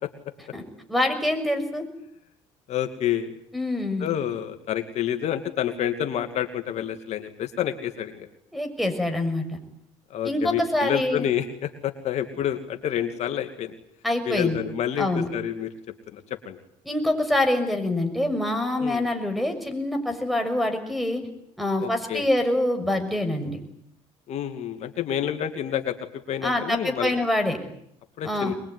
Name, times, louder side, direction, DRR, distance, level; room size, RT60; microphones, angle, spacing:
voice 1, 0.9-1.8 3.5-4.1 8.5-9.6 10.2-11.3 14.0-14.6 15.0-15.3 16.9-21.2 21.6-23.6 26.4-27.6 28.2-28.5, left 1 dB, ahead, 8 dB, 6.4 m, -25 dB
voice 2, 2.7-3.4 4.0-8.3 10.1-13.7 14.3-15.7 16.1-16.6 18.8-19.0 21.8-22.3 24.3-26.0 26.3-27.1 28.2-28.5, left 10 dB, 60° left, 7 dB, 2.4 m, -28 dB
23.5 x 22.0 x 9.6 m, 0.73 s
supercardioid pair, 85°, 13 cm